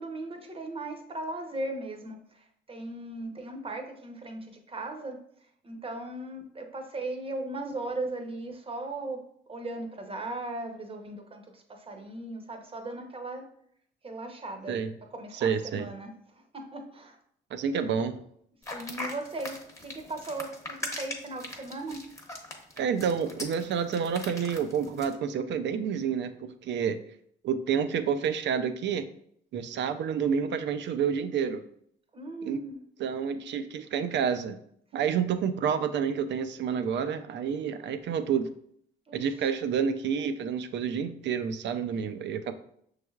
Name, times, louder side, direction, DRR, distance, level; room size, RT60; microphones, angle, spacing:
voice 1, 0.0-5.2 5.6-9.2 9.5-13.5 14.0-14.8 15.1-17.2 17.7-18.0 18.7-22.1 32.1-32.8 39.1-39.3, right 2 dB, 30° right, 4 dB, 0.7 m, -38 dB
voice 2, 15.4-15.9 17.5-18.1 22.8-27.0 27.4-29.1 29.5-31.6 32.4-32.6 33.0-34.6 34.9-38.5 39.1-42.5, right 7 dB, 65° right, 10 dB, 0.5 m, -29 dB
sound 1, 18.6-25.1, left 2 dB, 15° left, 0.9 m, -40 dB
6.0 x 3.2 x 2.3 m, 0.67 s
cardioid pair, 90°, 20 cm